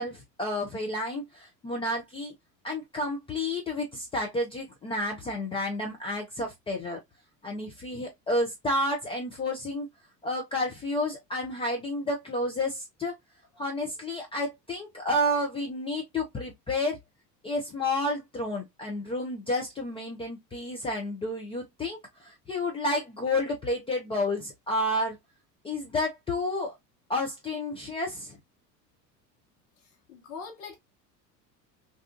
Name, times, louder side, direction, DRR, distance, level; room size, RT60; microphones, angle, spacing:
voice 1, 0.0-2.3 2.6-7.0 7.4-9.9 10.2-13.1 13.6-17.0 17.4-25.2 25.6-26.7 27.1-28.4, left 1 dB, 10° left, 0.4 m, -30 dB
voice 2, 30.1-30.8, left 5 dB, 55° left, 1.2 m, -42 dB
2.6 x 2.3 x 2.2 m
figure-of-eight pair, 70°, 49 cm